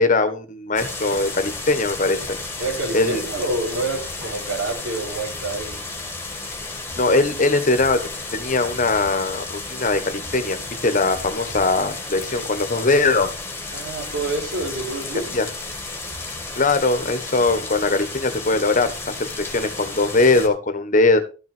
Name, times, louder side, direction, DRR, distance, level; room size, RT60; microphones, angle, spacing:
voice 1, 0.0-2.4 2.9-3.2 6.9-8.0 8.3-13.3 15.3-15.5 16.5-21.2, left 3 dB, 45° left, 9 dB, 1.4 m, -20 dB
sound 1, 0.7-20.5, left 3 dB, 15° left, 2.0 m, -33 dB
voice 2, 2.6-5.8 13.7-15.4, right 2 dB, 85° right, 0 dB, 4.1 m, -27 dB
13.5 x 6.2 x 4.6 m, 0.34 s
head